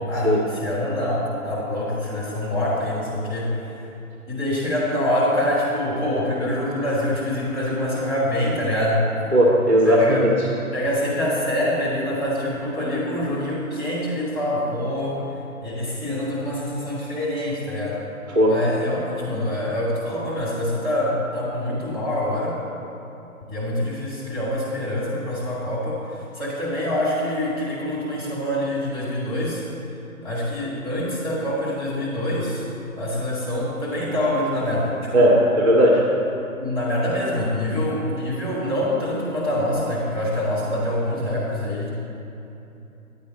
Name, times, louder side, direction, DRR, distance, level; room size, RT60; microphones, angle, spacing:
voice 1, 0.0-3.7 4.3-9.1 9.8-10.2 10.7-15.2 15.6-18.0 18.5-22.6 23.5-29.6 30.2-32.6 32.9-35.3 36.6-41.9, left 1 dB, 10° left, -9 dB, 2.4 m, -25 dB
voice 2, 9.3-10.3 18.3-18.6 35.1-36.0, equal, 10° right, -12 dB, 0.5 m, -16 dB
10.5 x 8.6 x 4.3 m, 2.9 s
figure-of-eight pair, 150°, 43 cm